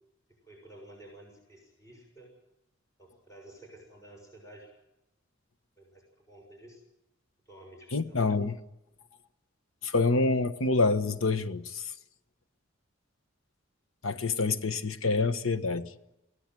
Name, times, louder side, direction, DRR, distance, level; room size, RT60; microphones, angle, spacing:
voice 1, 0.4-2.3 3.0-4.7 5.8-6.8 7.5-8.2, right 1 dB, 15° left, 1 dB, 6.3 m, -52 dB
voice 2, 7.9-8.6 9.8-11.9 14.0-15.9, left 3 dB, 90° left, 11 dB, 1.2 m, -27 dB
23.5 x 16.5 x 9.1 m, 0.93 s
head